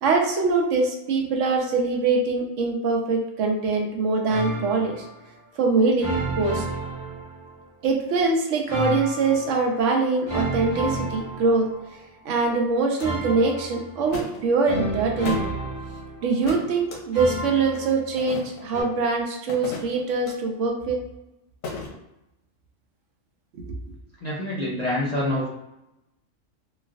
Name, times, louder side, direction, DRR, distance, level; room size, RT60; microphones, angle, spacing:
voice 1, 0.0-5.1 5.6-6.1 6.4-6.7 7.8-11.7 12.2-15.5 16.2-21.0 23.6-23.7, right 4 dB, 75° right, 1 dB, 0.9 m, -23 dB
sound 1, 4.3-5.1 6.0-7.7 8.7-9.7 10.3-12.0 13.0-14.2 14.6-16.5 17.1-18.4 18.7-18.8, right 1 dB, 25° right, 0.8 m, -31 dB
sound 2, 13.0-13.1 14.1-14.4 15.2-15.5 16.4-17.0 18.2-18.7 19.5-20.3 21.6-21.9, left 3 dB, 85° left, 1.1 m, -36 dB
voice 2, 24.2-25.5, left 1 dB, 50° left, -6 dB, 0.5 m, -26 dB
3.1 x 2.4 x 2.4 m, 0.91 s
omnidirectional pair, 1.3 m